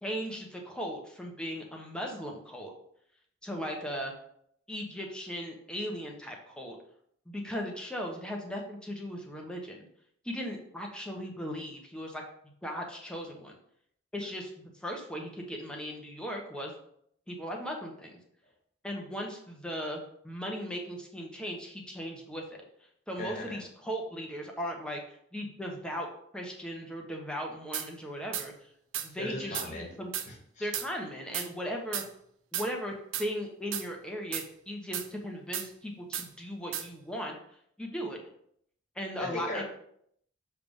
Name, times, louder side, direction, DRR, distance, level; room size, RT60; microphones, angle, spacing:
voice 1, 0.0-2.7 3.4-4.1 4.7-6.8 7.3-9.9 10.2-12.2 12.6-13.5 14.1-16.7 17.3-18.1 18.8-20.0 20.2-22.6 23.1-26.1 26.3-28.5 29.0-30.1 30.6-32.0 32.5-32.9 33.2-37.4 37.8-38.2 38.9-39.6, equal, 5° left, 0 dB, 1.0 m, -37 dB
voice 2, 23.2-23.6 29.2-29.9 30.3-30.7 39.2-39.6, left 1 dB, 40° left, 0 dB, 1.6 m, -38 dB
sound 1, 27.7-27.9 28.3-28.5 28.9-29.1 29.5-29.7 30.1-30.3 30.7-30.9 31.3-31.5 31.9-32.1 32.5-32.7 33.1-33.3 33.7-33.9 34.3-34.5 34.9-35.1 35.5-35.7 36.1-36.3 36.7-36.9, right 10 dB, 80° right, 0.6 m, -34 dB
6.7 x 3.5 x 5.4 m, 0.69 s
head